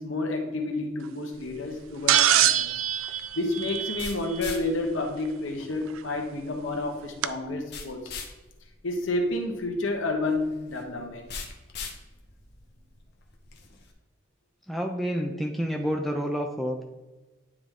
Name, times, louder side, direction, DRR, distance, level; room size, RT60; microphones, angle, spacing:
voice 1, 0.0-2.7 3.3-8.1 8.8-11.3, left 2 dB, 70° left, 3 dB, 1.1 m, -30 dB
sound 1, 1.3-13.9, left 4 dB, 50° left, 1.0 m, -44 dB
sound 2, 2.1-4.4 6.0-6.1 7.2-7.3, right 11 dB, 80° right, 0.3 m, -23 dB
voice 2, 14.7-16.8, equal, ahead, 1 dB, 0.4 m, -29 dB
9.5 x 3.5 x 3.7 m, 1.1 s
head